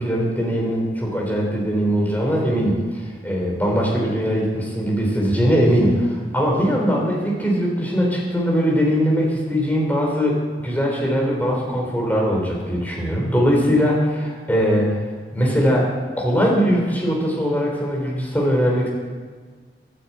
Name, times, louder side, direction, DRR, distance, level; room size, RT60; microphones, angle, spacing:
voice 1, 0.0-2.8 3.2-14.9 15.3-15.9 16.2-18.9, equal, 10° left, -3 dB, 3.5 m, -20 dB
11.5 x 9.8 x 8.5 m, 1.6 s
head